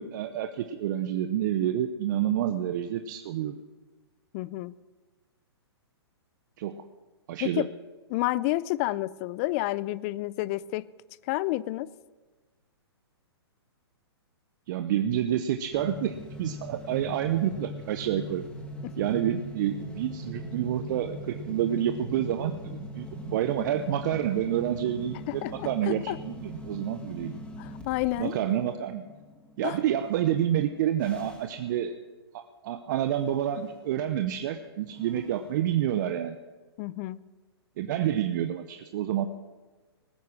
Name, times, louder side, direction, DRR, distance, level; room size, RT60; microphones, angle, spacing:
voice 1, 0.0-3.6 6.6-6.8 7.3-7.7 14.7-18.4 19.0-27.4 28.2-29.0 29.6-31.9 32.3-36.4 37.8-39.3, right 11 dB, 45° right, 0.8 m, -28 dB
voice 2, 4.3-4.7 7.4-7.7 8.1-10.9 11.3-11.9 18.8-19.0 25.3-26.2 27.6-28.3 29.6-29.8 36.8-37.2, left 18 dB, 35° left, 0.5 m, -30 dB
sound 1, 15.7-31.8 33.2-35.6, equal, 10° left, 2.1 m, -42 dB
19.0 x 9.4 x 6.0 m
hypercardioid pair, 125°, 14 cm